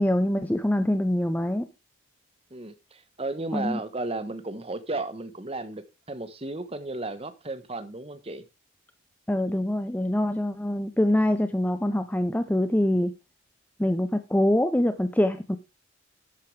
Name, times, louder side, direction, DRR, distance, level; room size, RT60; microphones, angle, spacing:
voice 1, 0.0-1.7 3.5-3.8 9.3-13.1 13.8-15.6, left 1 dB, 10° left, 0.5 m, -24 dB
voice 2, 2.5-8.4, right 2 dB, 30° right, 1.1 m, -34 dB
11.5 x 8.4 x 3.3 m
head